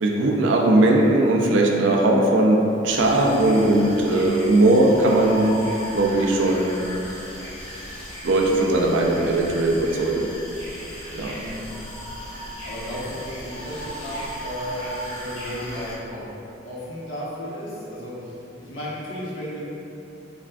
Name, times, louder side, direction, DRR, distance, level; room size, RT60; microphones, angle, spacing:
voice 1, 0.0-2.6 2.8-5.5 5.9-6.8 8.2-10.3 11.1-11.3, right 2 dB, 70° right, 0 dB, 0.4 m, -19 dB
sound 1, 2.8-15.9, equal, 30° left, 1.0 m, -36 dB
voice 2, 11.2-11.7 12.3-16.2 16.6-19.6, equal, 80° left, -8 dB, 1.0 m, -34 dB
5.8 x 2.3 x 2.4 m, 2.9 s
head